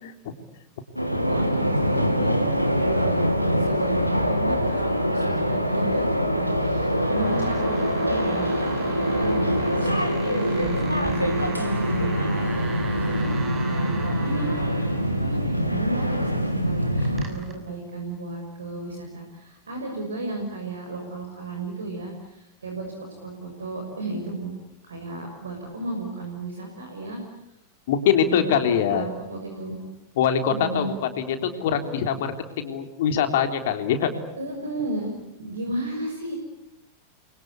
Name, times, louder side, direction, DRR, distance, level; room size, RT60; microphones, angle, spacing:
sound 1, 0.9-17.3, equal, 90° right, 2.7 m, -24 dB
voice 1, 1.1-3.3 3.6-9.5 9.7-24.5 24.8-27.2 28.2-29.8 30.5-30.9 34.4-35.1 35.4-36.3, right 2 dB, 70° right, 2 dB, 6.2 m, -34 dB
sound 2, 6.6-17.5, right 3 dB, 20° right, 6.3 m, -39 dB
voice 2, 27.9-29.0 30.2-30.9 31.3-34.1, left 8 dB, 55° left, 7 dB, 3.4 m, -23 dB
30.0 x 24.0 x 8.3 m, 0.82 s
figure-of-eight pair, 90°, 0 cm